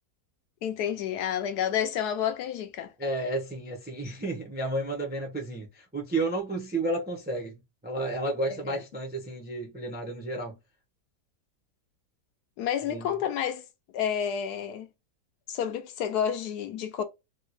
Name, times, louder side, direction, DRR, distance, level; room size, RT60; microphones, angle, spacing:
voice 1, 0.6-2.9 8.7-8.8 12.6-13.7 13.9-14.9 15.5-17.0, left 9 dB, 75° left, 1.0 m, -30 dB
voice 2, 3.0-10.6 12.9-13.1, right 2 dB, 10° right, 0.5 m, -32 dB
3.5 x 2.3 x 3.0 m
omnidirectional pair, 1.8 m